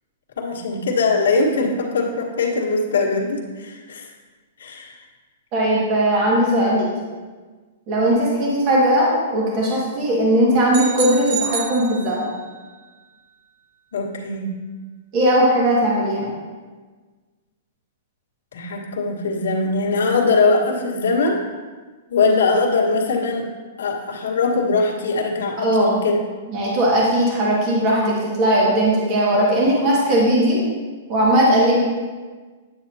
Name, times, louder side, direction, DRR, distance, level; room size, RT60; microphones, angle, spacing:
voice 1, 0.4-4.1 4.6-5.0 13.9-14.5 18.5-21.4 22.1-23.5 23.8-26.2, left 3 dB, 85° left, -3 dB, 1.5 m, -21 dB
voice 2, 5.5-6.9 7.9-12.3 15.1-16.3 25.6-26.0 26.5-30.6 31.1-31.8, right 1 dB, 35° right, -4 dB, 1.8 m, -18 dB
sound 1, 10.7-12.5, right 7 dB, 55° right, 0.9 m, -29 dB
9.3 x 8.0 x 2.8 m, 1.4 s
hypercardioid pair, 160°, 0 cm